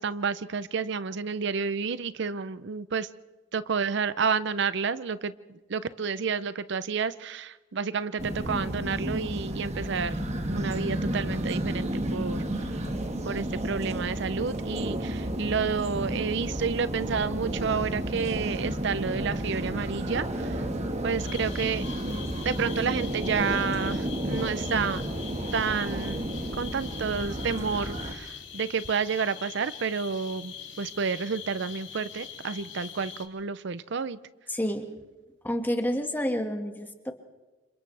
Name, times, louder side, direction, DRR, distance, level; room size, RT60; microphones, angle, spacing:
voice 1, 0.0-3.1 3.5-12.8 13.2-20.7 21.0-21.9 22.4-25.0 25.5-26.2 26.5-34.2, right 5 dB, 65° right, 15 dB, 0.6 m, -30 dB
sound 1, 8.2-28.1, right 1 dB, 35° right, 1.6 m, -32 dB
sound 2, 21.2-33.2, left 8 dB, 70° left, 2.8 m, -43 dB
voice 2, 34.5-34.9 35.4-37.1, equal, 10° left, 5 dB, 1.8 m, -29 dB
29.5 x 27.5 x 3.4 m, 1.2 s
head